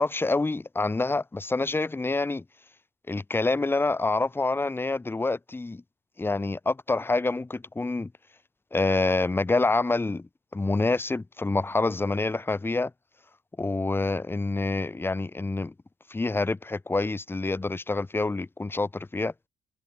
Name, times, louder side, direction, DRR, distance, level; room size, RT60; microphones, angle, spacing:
voice 1, 0.0-2.4 3.1-5.8 6.2-8.1 8.7-12.9 13.6-15.7 16.1-19.3, left 3 dB, 15° left, 1.1 m, -27 dB
cardioid pair, 110°, 17 cm